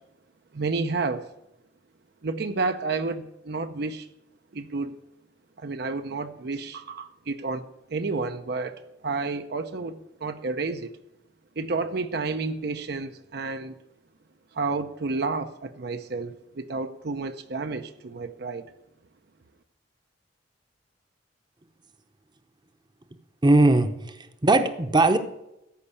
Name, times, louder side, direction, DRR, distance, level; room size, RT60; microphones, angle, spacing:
voice 1, 0.5-1.3 2.2-4.1 4.5-5.0 5.6-11.0 11.6-13.8 14.5-18.7, right 3 dB, 65° right, 8 dB, 0.7 m, -30 dB
voice 2, 23.4-23.9 24.4-25.2, right 2 dB, 25° right, 9 dB, 0.8 m, -18 dB
14.0 x 5.5 x 8.2 m, 0.87 s
head